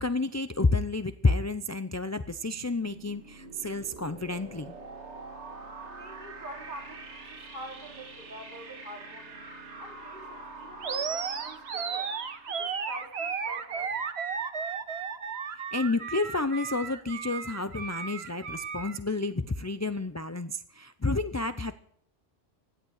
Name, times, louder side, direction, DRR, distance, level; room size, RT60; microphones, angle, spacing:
voice 1, 0.0-4.7 15.5-21.7, left 3 dB, 20° left, 11 dB, 0.4 m, -30 dB
sound 1, 2.3-13.9, right 3 dB, 90° right, 2.1 m, -46 dB
voice 2, 5.8-9.4 9.8-12.1 12.5-14.0, right 1 dB, 45° right, 1 dB, 3.6 m, -46 dB
Animal, 10.8-19.0, right 6 dB, 70° right, 1.3 m, -34 dB
16.5 x 11.5 x 6.5 m, 0.64 s
omnidirectional pair, 1.1 m